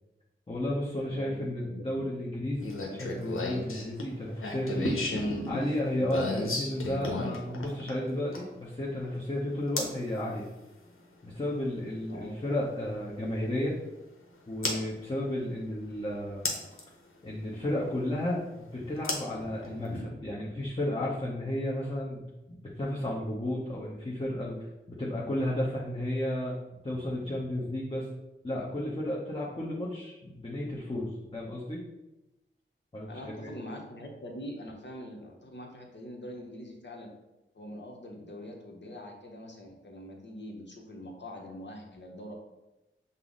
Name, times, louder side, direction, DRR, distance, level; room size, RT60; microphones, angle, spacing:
voice 1, 0.5-5.0 5.5-10.5 11.2-13.7 14.5-16.5 17.2-24.6 24.9-26.5 26.8-28.1 28.4-31.8 32.9-33.5, left 1 dB, 25° left, -6 dB, 0.8 m, -33 dB
voice 2, 1.0-2.1 12.1-12.4 33.1-37.1 37.5-42.3, left 1 dB, 60° left, 1 dB, 0.9 m, -44 dB
sound 1, 2.6-8.6 9.8-10.0 11.9-12.0 14.6-14.8 16.5-16.8 19.0-20.0, left 2 dB, 85° left, 0.7 m, -33 dB
5.4 x 2.0 x 3.8 m, 0.98 s
wide cardioid pair, 50°, 21 cm